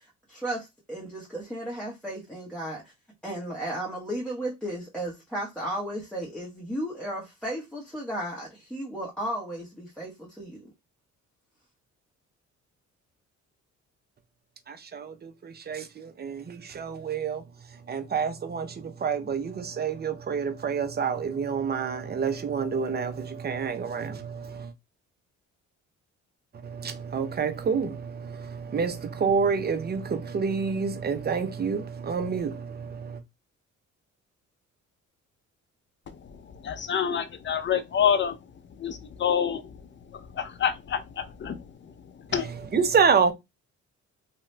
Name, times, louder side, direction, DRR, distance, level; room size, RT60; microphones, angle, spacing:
voice 1, 0.0-2.9 3.2-10.7, right 1 dB, 5° left, 1.0 m, -34 dB
voice 2, 14.7-17.4 17.7-24.7 26.6-33.2 42.3-43.3, right 6 dB, 35° right, 0.7 m, -28 dB
voice 3, 36.1-38.4 38.8-39.8 40.1-41.9 42.3-42.5, left 8 dB, 40° left, 0.6 m, -28 dB
2.8 x 2.3 x 3.2 m
cardioid pair, 90°, 30 cm